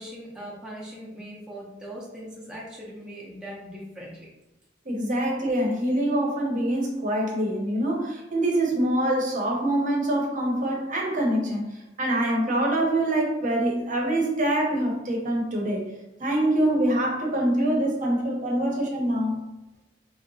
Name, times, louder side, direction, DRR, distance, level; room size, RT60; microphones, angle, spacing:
voice 1, 0.0-4.3, equal, 5° right, -5 dB, 0.5 m, -40 dB
voice 2, 4.8-11.7 12.0-15.8 16.2-19.4, right 1 dB, 45° right, -1 dB, 0.7 m, -25 dB
3.3 x 2.8 x 2.6 m, 1.0 s
head